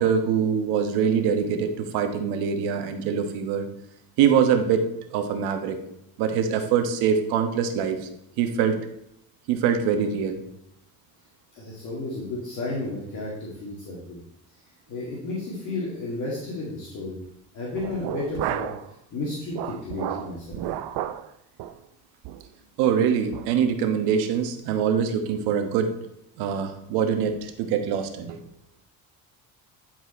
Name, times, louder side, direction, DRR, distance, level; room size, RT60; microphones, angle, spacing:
voice 1, 0.0-3.7 4.2-5.8 6.2-8.1 8.4-8.8 9.5-10.4 22.8-25.9 26.4-28.4, right 7 dB, 90° right, 6 dB, 1.2 m, -24 dB
voice 2, 11.5-14.2 14.9-17.2 17.5-18.7 19.1-20.6, left 2 dB, 50° left, -5 dB, 2.2 m, -32 dB
sound 1, 17.7-18.9 19.2-21.3 21.6-21.8 22.2-22.5 22.9-23.0 23.3-23.5, right 12 dB, 75° right, 0.7 m, -32 dB
10.0 x 4.6 x 4.3 m, 0.77 s
cardioid pair, 130°, 39 cm